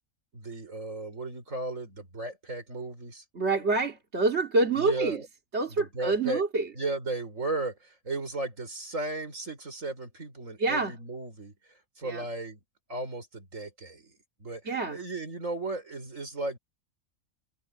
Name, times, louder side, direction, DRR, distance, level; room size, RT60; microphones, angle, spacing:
voice 1, 0.3-3.2 4.8-5.2 5.7-6.4 6.7-11.5 12.0-12.6 12.9-16.6, right 2 dB, 65° right, 5.3 m, -35 dB
voice 2, 3.3-5.2 5.5-6.7 10.6-11.0 12.0-12.3 14.6-15.0, right 3 dB, 50° right, 2.5 m, -27 dB
omnidirectional pair, 1.4 m